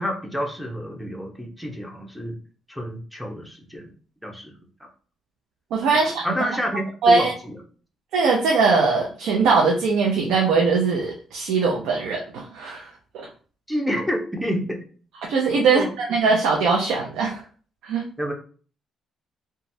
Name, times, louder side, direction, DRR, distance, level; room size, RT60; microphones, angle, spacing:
voice 1, 0.0-2.4 2.7-3.9 4.2-4.5 4.8-4.9 5.9-7.6 13.7-14.8 15.6-15.9 18.2-18.3, equal, ahead, 0 dB, 0.8 m, -29 dB
voice 2, 5.7-6.2 7.0-7.3 8.1-12.9 13.1-13.3 15.3-15.8 16.1-17.4 17.8-18.0, right 4 dB, 90° right, -1 dB, 0.5 m, -20 dB
3.0 x 2.3 x 2.7 m, 0.40 s
cardioid pair, 90°, 0 cm